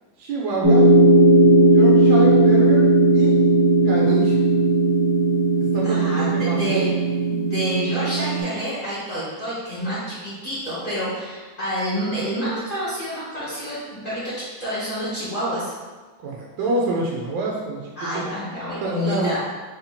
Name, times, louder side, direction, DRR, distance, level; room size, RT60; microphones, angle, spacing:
voice 1, 0.2-0.9 1.7-3.4 3.8-4.4 5.6-6.9 16.2-18.2 18.8-19.3, right 3 dB, 80° right, -3 dB, 1.4 m, -27 dB
sound 1, 0.6-8.4, right 2 dB, 30° right, 0.5 m, -16 dB
voice 2, 5.8-6.9 7.3-15.7 17.9-19.4, equal, 30° left, -11 dB, 1.3 m, -28 dB
4.1 x 2.8 x 4.1 m, 1.3 s
omnidirectional pair, 2.1 m